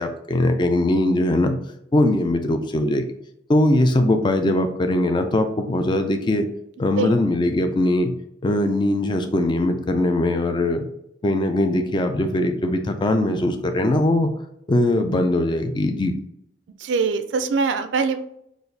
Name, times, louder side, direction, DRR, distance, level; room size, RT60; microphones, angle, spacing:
voice 1, 0.0-1.6 1.9-3.0 3.5-6.5 6.8-8.1 8.4-10.9 11.2-14.3 14.7-16.1, left 1 dB, 25° left, 7 dB, 0.3 m, -21 dB
voice 2, 16.8-18.2, right 4 dB, 70° right, 8 dB, 0.3 m, -22 dB
3.9 x 2.5 x 3.2 m, 0.77 s
head